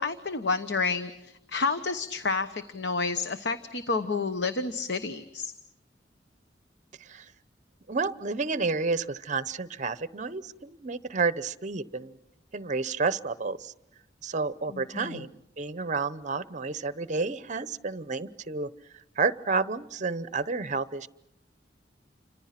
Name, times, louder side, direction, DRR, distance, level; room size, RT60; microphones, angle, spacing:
voice 1, 0.0-5.5 14.7-15.2, left 4 dB, 75° left, 9 dB, 1.0 m, -30 dB
voice 2, 7.0-7.3 7.9-12.2 12.5-13.7 14.2-18.7 19.2-21.1, right 4 dB, 45° right, 16 dB, 0.8 m, -30 dB
29.0 x 25.5 x 5.9 m, 0.84 s
head